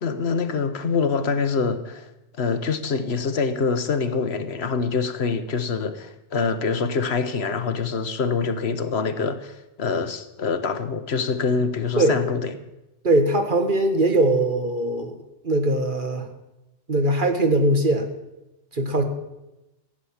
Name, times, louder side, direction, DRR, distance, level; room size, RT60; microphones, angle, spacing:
voice 1, 0.0-2.1 2.4-12.5, left 5 dB, 80° left, 10 dB, 1.3 m, -25 dB
voice 2, 13.0-15.1 15.4-16.3 16.9-18.1 18.7-19.0, right 1 dB, 50° right, 6 dB, 1.7 m, -21 dB
15.0 x 9.8 x 7.2 m, 0.96 s
omnidirectional pair, 1.1 m